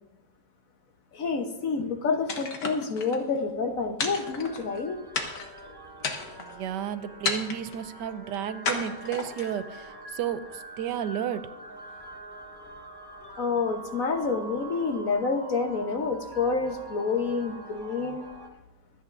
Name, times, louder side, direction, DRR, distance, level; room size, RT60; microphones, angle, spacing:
voice 1, 1.1-5.0 13.4-18.3, left 4 dB, 55° left, 5 dB, 1.3 m, -28 dB
sound 1, 2.3-3.2 4.0-4.8 5.1-5.6 6.0-6.6 7.2-7.8 8.6-9.6, left 4 dB, 85° left, 2.0 m, -32 dB
sound 2, 4.2-18.5, right 2 dB, 15° right, 1.2 m, -45 dB
voice 2, 6.4-11.5, right 9 dB, 90° right, 13 dB, 1.3 m, -32 dB
24.5 x 9.7 x 2.5 m, 0.97 s
omnidirectional pair, 1.8 m